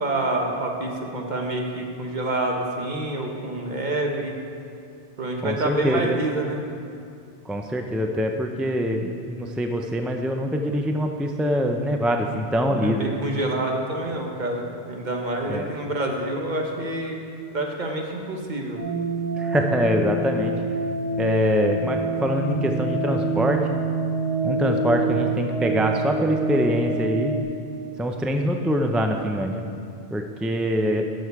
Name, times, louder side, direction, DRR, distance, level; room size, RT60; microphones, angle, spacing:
voice 1, 0.0-4.4 5.2-6.6 12.6-17.2 17.5-18.8, right 2 dB, 45° right, 1 dB, 1.2 m, -27 dB
voice 2, 5.4-6.2 7.5-13.1 15.5-15.7 19.4-20.5 21.2-23.6 24.4-27.3 28.0-29.6 30.1-31.1, equal, ahead, 3 dB, 0.3 m, -24 dB
sound 1, 18.8-27.4, right 3 dB, 70° right, 2.6 m, -26 dB
12.5 x 6.7 x 4.8 m, 2.4 s
omnidirectional pair, 1.1 m